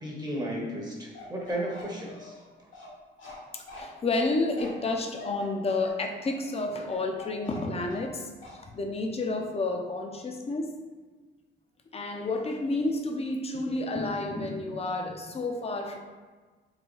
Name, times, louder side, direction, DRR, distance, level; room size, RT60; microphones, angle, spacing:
voice 1, 0.0-2.3, right 1 dB, 20° right, -2 dB, 0.9 m, -34 dB
Bark, 1.1-8.1 8.4-8.6, left 2 dB, 80° left, 1.5 m, -46 dB
voice 2, 3.5-10.8 11.9-16.0, left 2 dB, 30° left, 3 dB, 0.6 m, -30 dB
3.9 x 2.2 x 4.5 m, 1.4 s
cardioid pair, 90°, 20 cm